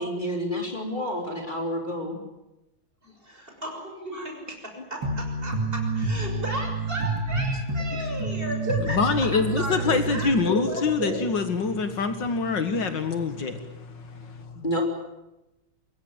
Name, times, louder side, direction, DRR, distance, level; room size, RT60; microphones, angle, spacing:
voice 1, 0.0-2.2 7.9-8.1 14.6-14.8, equal, 25° left, 3.8 m, -29 dB
voice 2, 3.0-11.2, right 1 dB, 30° right, 6.8 m, -34 dB
sound 1, 5.0-10.3, right 3 dB, 75° right, 3.9 m, -28 dB
voice 3, 8.8-14.6, left 4 dB, 70° left, 2.4 m, -25 dB
24.5 x 22.0 x 9.0 m
omnidirectional pair, 2.1 m